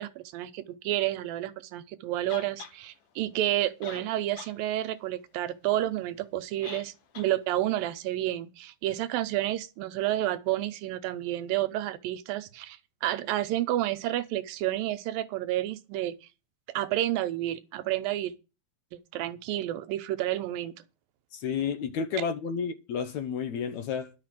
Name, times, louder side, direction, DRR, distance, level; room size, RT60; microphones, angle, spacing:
voice 1, 0.0-16.2 16.7-18.3 18.9-20.7, right 14 dB, 85° right, 2.5 m, -30 dB
sound 1, 2.3-2.8 3.5-3.6 3.8-4.6 4.9-5.0 6.6-6.9 7.1-7.3, left 7 dB, 85° left, 3.4 m, -42 dB
voice 2, 21.3-24.1, left 6 dB, 70° left, 1.9 m, -31 dB
11.5 x 6.5 x 7.5 m
omnidirectional pair, 4.1 m